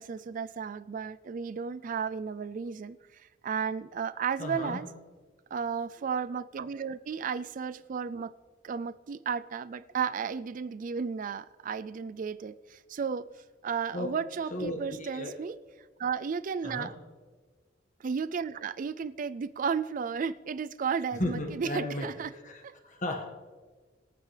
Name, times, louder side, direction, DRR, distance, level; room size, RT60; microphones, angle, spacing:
voice 1, 0.0-3.0 3.4-4.9 5.5-8.3 8.6-13.3 13.6-15.6 16.0-16.9 18.0-22.3 22.6-22.7, right 6 dB, 45° right, 15 dB, 0.4 m, -33 dB
voice 2, 4.4-4.8 13.9-14.1 14.5-15.3 16.6-16.9 21.2-23.2, left 1 dB, 45° left, 1 dB, 1.6 m, -35 dB
22.0 x 8.9 x 3.3 m, 1.4 s
head